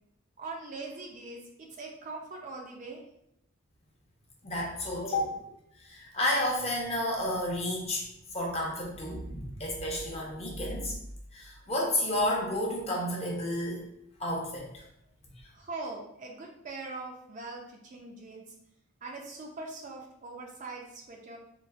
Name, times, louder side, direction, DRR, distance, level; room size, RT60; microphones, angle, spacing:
voice 1, 0.4-3.0 15.5-18.5 19.0-21.4, right 3 dB, 35° right, 0 dB, 0.4 m, -42 dB
voice 2, 4.4-5.3 5.8-11.0 11.3-13.8 14.2-14.8, left 1 dB, 30° left, -2 dB, 0.7 m, -31 dB
3.8 x 2.5 x 2.4 m, 0.78 s
head